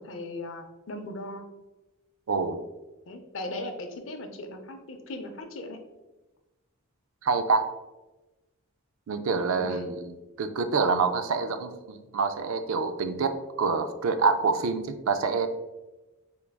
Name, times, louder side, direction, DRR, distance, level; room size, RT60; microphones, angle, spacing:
voice 1, 0.0-1.4 3.1-5.8 9.5-9.9, left 1 dB, 60° left, 6 dB, 0.5 m, -38 dB
voice 2, 2.3-2.6 7.2-7.6 9.1-15.5, right 4 dB, 70° right, 8 dB, 0.4 m, -27 dB
4.4 x 3.4 x 2.2 m, 1.1 s
head